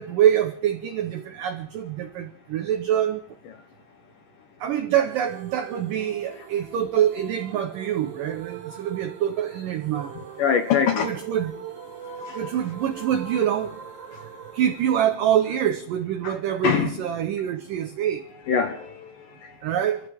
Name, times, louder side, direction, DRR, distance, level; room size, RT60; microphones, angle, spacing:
voice 1, 0.0-3.2 4.6-10.1 11.0-11.5 12.4-13.8 14.5-18.2 19.6-20.0, right 10 dB, 80° right, 1.9 m, -25 dB
sound 1, 5.1-16.0, right 7 dB, 50° right, 3.9 m, -42 dB
voice 2, 10.4-11.2 12.3-12.4 14.1-14.2 16.2-16.4 16.6-17.0 18.5-19.6, left 7 dB, 70° left, 2.2 m, -24 dB
29.0 x 14.5 x 3.5 m
omnidirectional pair, 5.0 m